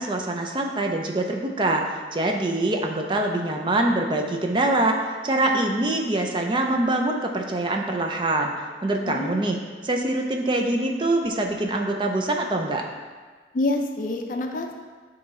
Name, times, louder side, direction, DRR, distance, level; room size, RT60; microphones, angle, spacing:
voice 1, 0.0-5.0 5.2-8.5 8.8-9.6 9.8-12.9, right 2 dB, 25° right, 2 dB, 0.4 m, -24 dB
voice 2, 9.0-9.4 13.5-14.7, left 2 dB, 45° left, 3 dB, 0.5 m, -27 dB
8.6 x 3.1 x 3.6 m, 1.5 s
head